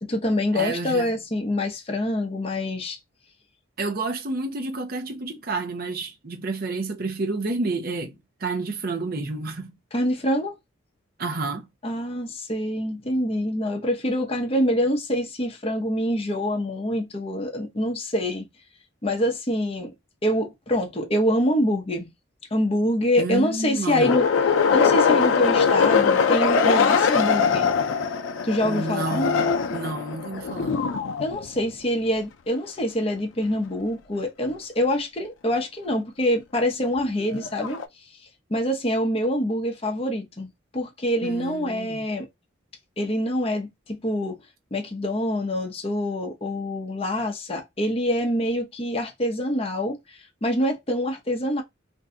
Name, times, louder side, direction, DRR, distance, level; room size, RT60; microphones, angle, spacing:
voice 1, 0.0-3.0 9.9-10.5 11.8-18.5 19.0-20.0 20.2-22.1 22.5-24.3 24.7-27.7 28.4-29.3 31.2-37.8 38.2-42.3 43.0-44.4 44.7-51.6, left 1 dB, 30° left, 0.7 m, -25 dB
voice 2, 0.5-1.2 3.8-9.8 11.2-11.7 23.2-24.2 28.6-30.8 41.2-42.1, right 3 dB, 50° right, 0.6 m, -30 dB
sound 1, 24.0-31.7 37.0-37.8, left 6 dB, 85° left, 0.5 m, -22 dB
2.6 x 2.2 x 3.6 m
head